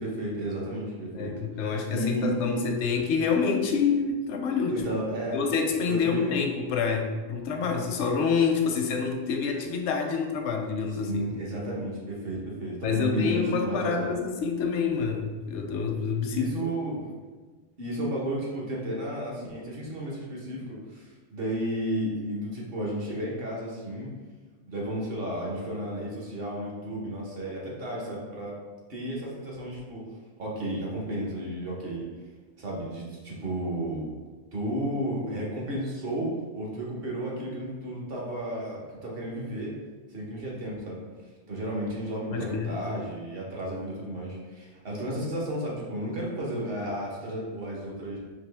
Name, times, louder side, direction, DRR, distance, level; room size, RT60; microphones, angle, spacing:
voice 1, 0.0-1.3 1.9-2.6 4.7-5.4 5.9-6.3 11.0-14.1 16.3-17.1 17.8-20.6 20.9-24.1 24.7-28.6 28.9-30.0 30.4-32.1 32.6-34.1 34.5-39.7 40.1-41.0 41.5-48.2, right 1 dB, 60° right, -3 dB, 1.2 m, -33 dB
voice 2, 1.1-4.8 5.3-11.3 12.8-16.5 42.3-42.7, left 5 dB, 85° left, 3 dB, 0.9 m, -27 dB
4.2 x 2.9 x 3.3 m, 1.4 s
omnidirectional pair, 1.1 m